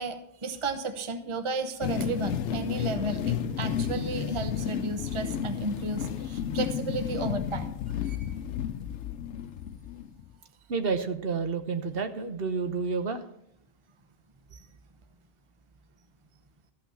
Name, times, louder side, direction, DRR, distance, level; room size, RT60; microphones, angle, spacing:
voice 1, 0.0-8.3 14.5-14.7, right 3 dB, 30° right, 8 dB, 0.9 m, -33 dB
sound 1, 1.8-10.3, left 9 dB, 90° left, 0.9 m, -32 dB
voice 2, 10.7-13.2, right 5 dB, 60° right, 8 dB, 1.2 m, -30 dB
13.5 x 5.9 x 7.2 m, 0.74 s
omnidirectional pair, 1.1 m